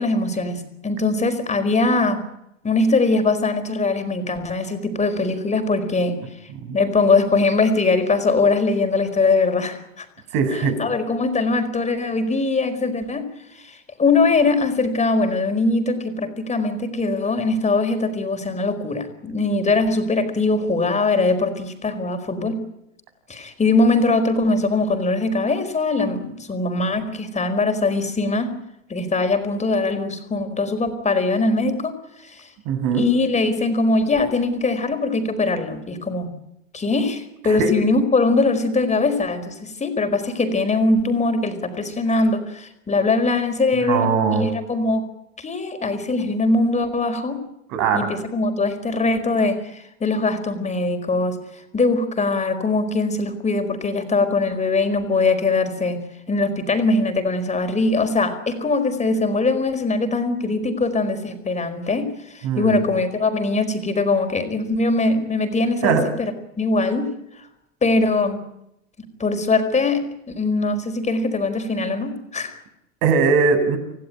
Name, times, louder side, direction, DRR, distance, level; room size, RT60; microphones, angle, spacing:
voice 1, 0.0-2.2 2.6-6.2 6.7-10.0 10.5-13.2 13.6-22.6 23.3-28.5 28.9-31.9 32.2-32.5 32.9-36.3 36.7-45.1 45.4-47.4 47.9-51.4 51.7-56.0 56.3-66.3 66.6-67.1 67.8-68.4 69.2-70.1 70.4-72.6, left 3 dB, 15° left, 7 dB, 4.8 m, -21 dB
voice 2, 10.3-10.7 32.7-33.0 37.4-37.7 43.8-44.5 47.7-48.0 62.4-62.8 65.8-66.0 73.0-73.8, right 5 dB, 55° right, 8 dB, 7.1 m, -20 dB
27.5 x 17.0 x 9.2 m, 0.85 s
hypercardioid pair, 110°, 41 cm